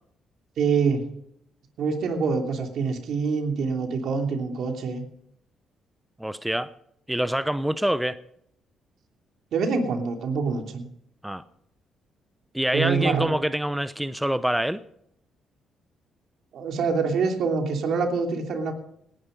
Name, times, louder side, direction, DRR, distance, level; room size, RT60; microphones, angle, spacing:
voice 1, 0.6-1.0 1.8-5.0 9.5-10.9 12.7-13.4 16.5-18.7, right 5 dB, 70° right, 4 dB, 2.9 m, -25 dB
voice 2, 6.2-6.7 7.1-8.2 11.2-11.4 12.5-14.8, equal, 5° right, 13 dB, 0.7 m, -25 dB
18.5 x 10.5 x 5.3 m, 0.72 s
cardioid pair, 90°, 0 cm